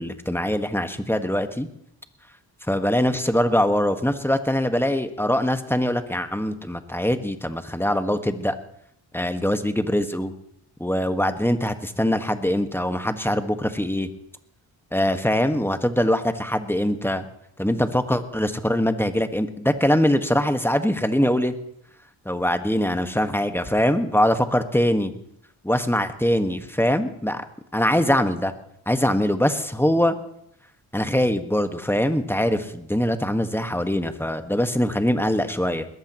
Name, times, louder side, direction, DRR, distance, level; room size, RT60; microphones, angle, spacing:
voice 1, 0.0-1.7 2.7-8.5 9.1-10.3 10.8-14.1 14.9-17.3 17.6-21.6 22.3-25.1 25.6-27.4 27.7-28.5 28.9-30.2 30.9-35.9, equal, 5° left, 8 dB, 1.7 m, -23 dB
20.5 x 15.0 x 3.1 m, 0.73 s
hypercardioid pair, 45°, 49 cm